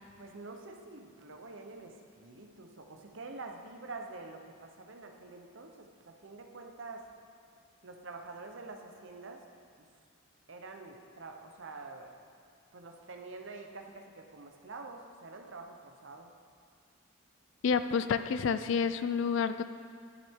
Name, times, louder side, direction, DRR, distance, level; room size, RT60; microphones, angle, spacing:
voice 1, 0.2-7.0 7.8-9.4 9.8-9.9 10.5-12.1 12.7-16.3, right 3 dB, 60° right, 3 dB, 0.8 m, -47 dB
voice 2, 17.6-19.6, left 6 dB, 60° left, 11 dB, 0.3 m, -29 dB
10.5 x 7.5 x 3.6 m, 2.2 s
head